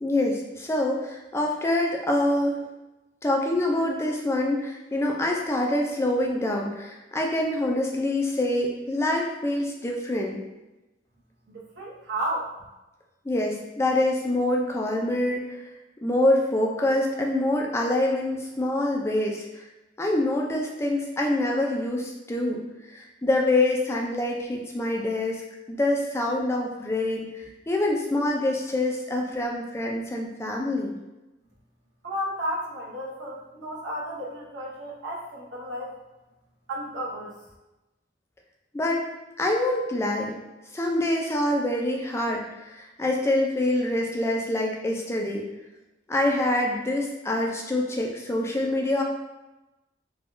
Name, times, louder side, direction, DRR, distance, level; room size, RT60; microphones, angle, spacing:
voice 1, 0.0-2.6 3.2-10.4 13.3-15.6 16.0-19.7 20.0-22.6 22.9-25.4 25.7-30.9 38.7-39.0 39.4-40.4 40.7-45.5 46.1-49.0, left 1 dB, 15° left, 0 dB, 0.3 m, -25 dB
voice 2, 11.5-12.5 32.0-35.9 36.7-37.3, equal, 85° right, -4 dB, 0.9 m, -33 dB
3.4 x 2.3 x 2.5 m, 1.0 s
head